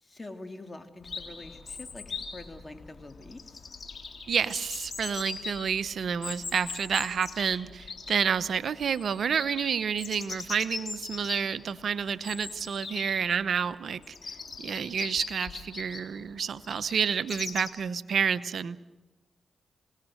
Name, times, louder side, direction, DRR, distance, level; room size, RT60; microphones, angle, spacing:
voice 1, 0.0-3.6, left 2 dB, 30° left, 6 dB, 3.1 m, -45 dB
Chirp tweet, 1.0-17.7, left 4 dB, 55° left, 3.6 m, -41 dB
voice 2, 4.3-14.1 14.6-18.8, right 7 dB, 75° right, 14 dB, 0.8 m, -29 dB
27.5 x 19.0 x 6.5 m, 1.1 s
supercardioid pair, 50°, 0 cm